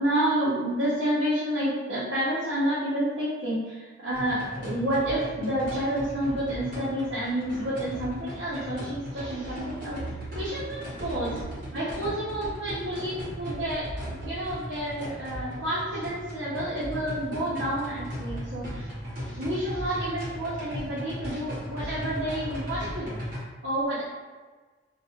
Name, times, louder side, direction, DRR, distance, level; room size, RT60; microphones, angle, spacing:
voice 1, 0.0-10.0 10.4-11.4 11.7-18.9 19.3-23.2 23.6-24.0, right 1 dB, 85° right, -9 dB, 0.7 m, -29 dB
sound 1, 4.1-23.4, equal, 50° right, 1.0 m, -37 dB
2.3 x 2.3 x 2.8 m, 1.3 s
head